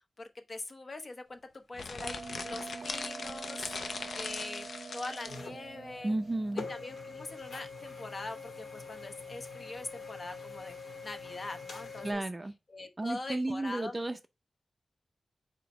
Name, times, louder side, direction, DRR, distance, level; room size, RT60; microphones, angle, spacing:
voice 1, 0.2-3.7 4.1-4.7 4.9-6.1 6.7-12.2 12.7-14.0, left 2 dB, 40° left, 1.0 m, -43 dB
sound 1, 1.7-5.4, left 4 dB, 65° left, 0.7 m, -40 dB
Bell, 2.0-7.1, right 4 dB, 80° right, 0.7 m, -45 dB
sound 2, 5.3-12.1, left 4 dB, 85° left, 2.5 m, -44 dB
voice 2, 6.0-6.7 12.0-12.5 13.0-14.3, right 2 dB, 20° right, 0.5 m, -33 dB
4.9 x 4.4 x 4.9 m
wide cardioid pair, 145°, 0 cm